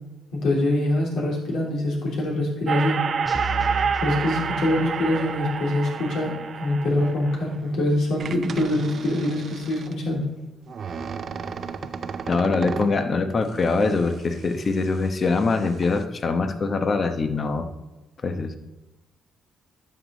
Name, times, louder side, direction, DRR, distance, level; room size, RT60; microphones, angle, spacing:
voice 1, 0.3-3.0 4.0-10.2, left 1 dB, 75° left, -2 dB, 3.1 m, -24 dB
sound 1, 2.7-7.7 8.2-9.9 10.7-13.0 13.6-15.1 15.3-16.0, right 6 dB, 50° right, 0.6 m, -30 dB
sound 2, 3.3-5.2, right 2 dB, 15° left, 3.1 m, -33 dB
voice 2, 12.2-17.7 18.2-18.6, left 3 dB, 40° left, 8 dB, 1.0 m, -23 dB
12.0 x 6.5 x 4.0 m, 1.1 s
cardioid pair, 90°, 0 cm